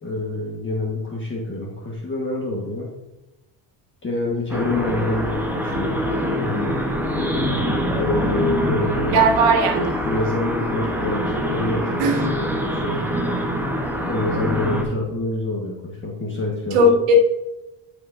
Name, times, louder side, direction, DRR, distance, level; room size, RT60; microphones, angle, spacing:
voice 1, 0.0-2.9 4.0-6.0 6.4-6.7 7.9-9.2 10.0-13.0 14.1-16.8, left 2 dB, 25° left, -3 dB, 1.5 m, -27 dB
sound 1, 4.5-14.8, equal, 5° right, 1.1 m, -24 dB
voice 2, 9.1-10.0 12.0-12.3 16.7-17.1, right 2 dB, 85° right, 3 dB, 1.8 m, -17 dB
13.0 x 4.9 x 2.7 m, 0.98 s
cardioid pair, 125°, 50 cm